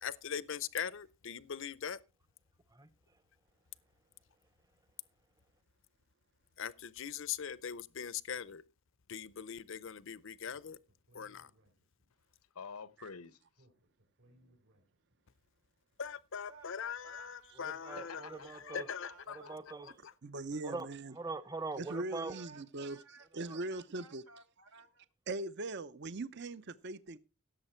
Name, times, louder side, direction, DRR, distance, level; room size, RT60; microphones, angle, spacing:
voice 1, 0.0-2.0 6.6-8.6 9.1-10.8 11.1-11.5 16.0-18.2 18.7-19.4, left 7 dB, 60° left, 0.6 m, -41 dB
Speech, 10.4-12.3 13.5-15.3, equal, 65° right, 4.1 m, -68 dB
voice 2, 12.5-13.7 17.8-19.1, left 5 dB, 90° left, 0.9 m, -49 dB
voice 3, 16.5-18.6 19.0-19.5 20.5-20.6 21.9-25.1, right 4 dB, 85° right, 2.2 m, -57 dB
voice 4, 17.6-18.9 19.3-19.9 20.6-22.4 23.5-23.6, right 3 dB, 15° right, 0.8 m, -42 dB
voice 5, 20.2-21.1 21.8-23.0 23.3-24.2 25.3-27.2, right 2 dB, 50° right, 0.7 m, -40 dB
16.5 x 7.4 x 4.4 m
head